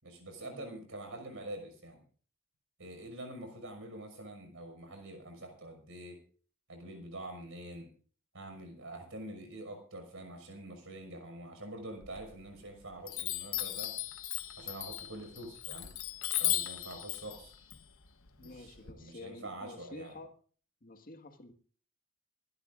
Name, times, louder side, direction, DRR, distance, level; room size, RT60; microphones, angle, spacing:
voice 1, 0.0-2.0 2.8-6.2 6.7-7.9 8.3-14.0 14.6-15.9 16.4-17.5 18.4-20.2, right 1 dB, 70° right, 5 dB, 5.9 m, -46 dB
Chime, 12.0-12.7 13.1-18.9, left 14 dB, 70° left, 1.2 m, -36 dB
voice 2, 18.4-20.3 20.8-21.5, left 2 dB, 45° left, 6 dB, 1.9 m, -49 dB
25.0 x 12.5 x 2.6 m, 0.43 s
head